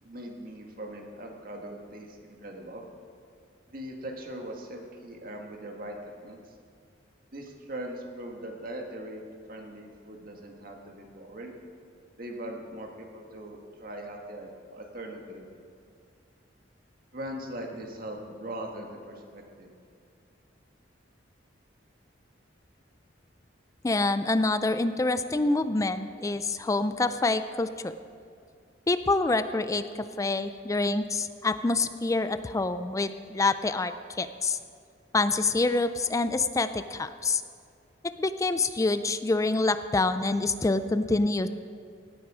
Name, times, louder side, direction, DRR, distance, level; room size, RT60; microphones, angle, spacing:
voice 1, 0.0-2.8 3.7-6.0 6.2-6.4 7.3-9.2 9.5-11.6 12.2-15.5 17.1-19.7, right 1 dB, 50° right, 1 dB, 1.8 m, -40 dB
voice 2, 23.8-27.9 28.9-29.8 30.2-34.6 35.1-37.4 38.0-41.5, left 3 dB, 20° left, 12 dB, 0.4 m, -26 dB
17.0 x 9.4 x 4.9 m, 2.3 s
head